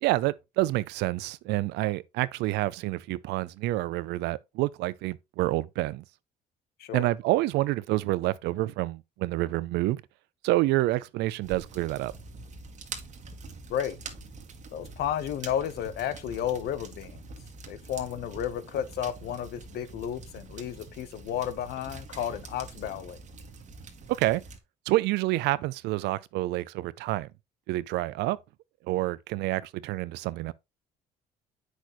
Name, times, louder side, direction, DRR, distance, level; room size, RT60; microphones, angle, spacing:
voice 1, 0.0-6.0 6.9-10.0 10.4-12.1 24.1-24.4 24.9-27.3 27.7-28.4 28.9-30.5, right 18 dB, 85° right, 0.5 m, -28 dB
sound 1, 11.4-24.6, right 4 dB, 45° right, 1.6 m, -45 dB
voice 2, 14.7-17.2 17.7-23.2, left 10 dB, 70° left, 1.0 m, -32 dB
8.2 x 6.2 x 3.0 m
cardioid pair, 110°, 17 cm